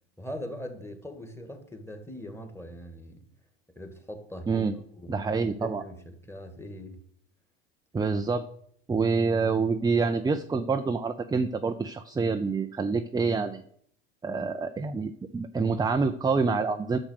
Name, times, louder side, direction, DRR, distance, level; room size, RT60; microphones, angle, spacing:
voice 1, 0.2-3.2 3.8-4.7 5.0-5.2 5.6-7.0, left 1 dB, 10° left, 2.0 m, -41 dB
voice 2, 4.5-4.8 5.1-5.8 7.9-8.4 8.9-13.6 14.2-17.0, right 4 dB, 15° right, 0.6 m, -27 dB
10.0 x 6.4 x 6.5 m
hypercardioid pair, 95°, 31 cm